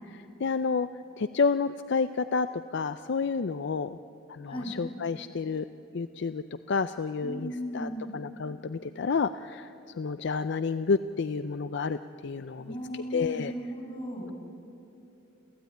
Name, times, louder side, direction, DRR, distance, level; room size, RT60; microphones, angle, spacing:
voice 1, 0.1-0.9 1.2-4.0 4.3-5.7 5.9-13.5, left 5 dB, 60° left, 12 dB, 0.4 m, -30 dB
voice 2, 7.2-8.1 12.6-14.3, equal, 25° left, -2 dB, 6.3 m, -36 dB
27.5 x 16.0 x 9.3 m, 2.9 s
head